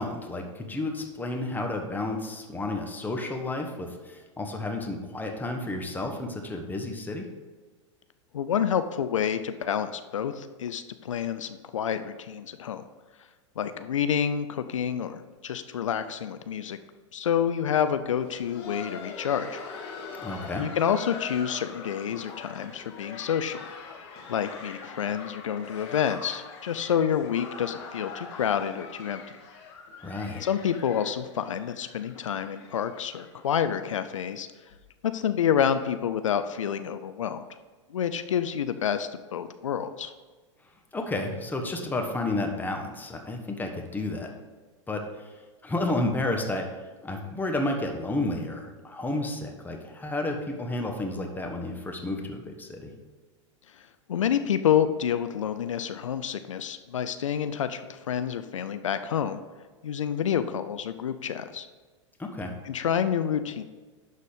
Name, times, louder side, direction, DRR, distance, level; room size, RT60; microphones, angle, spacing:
voice 1, 0.0-7.2 20.2-20.7 30.0-30.4 40.9-44.3 44.9-45.3 45.6-46.7 47.0-52.9 62.2-62.5, left 2 dB, 10° left, 3 dB, 1.3 m, -31 dB
voice 2, 8.3-12.8 13.6-16.8 17.1-19.6 20.6-23.7 24.3-29.2 30.4-34.5 35.1-37.4 37.9-40.1 53.8-59.4 59.8-61.7 62.6-63.6, left 8 dB, 85° left, 10 dB, 0.5 m, -28 dB
Laughter, 18.0-33.7 34.0-34.1 34.7-34.8 35.3-35.6 36.6-36.7, left 4 dB, 60° left, 2.0 m, -43 dB
11.0 x 4.2 x 5.1 m, 1.3 s
hypercardioid pair, 100°, 16 cm